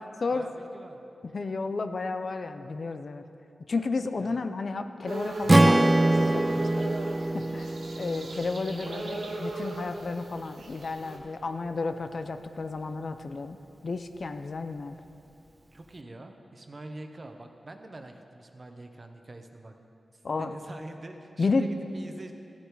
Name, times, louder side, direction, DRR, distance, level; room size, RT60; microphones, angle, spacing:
voice 1, 0.3-1.0 4.1-4.4 8.8-8.9 15.7-19.7 20.1-22.3, right 2 dB, 45° right, 5 dB, 1.0 m, -45 dB
voice 2, 1.3-3.2 3.7-7.0 7.3-14.9 20.2-20.5 21.4-21.7, left 3 dB, 60° left, 8 dB, 0.6 m, -32 dB
sound 1, 5.1-11.2, right 2 dB, 90° right, 1.1 m, -37 dB
Strum, 5.5-9.7, right 2 dB, 30° right, 0.3 m, -24 dB
14.0 x 8.2 x 4.8 m, 2.8 s
cardioid pair, 50°, 0 cm